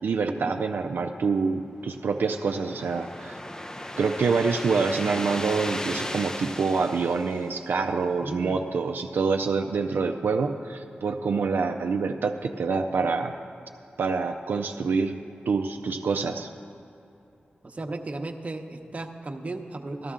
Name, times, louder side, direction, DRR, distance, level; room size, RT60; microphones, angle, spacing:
voice 1, 0.0-3.3 4.0-13.3 14.0-15.2 15.5-16.5, right 4 dB, 85° right, 4 dB, 0.4 m, -26 dB
sound 1, 1.5-8.1, left 1 dB, 20° left, 0.5 m, -37 dB
voice 2, 8.2-8.6 17.6-20.1, right 2 dB, 40° right, 4 dB, 0.8 m, -35 dB
13.0 x 13.0 x 3.7 m, 2.8 s
cardioid pair, 65°, 3 cm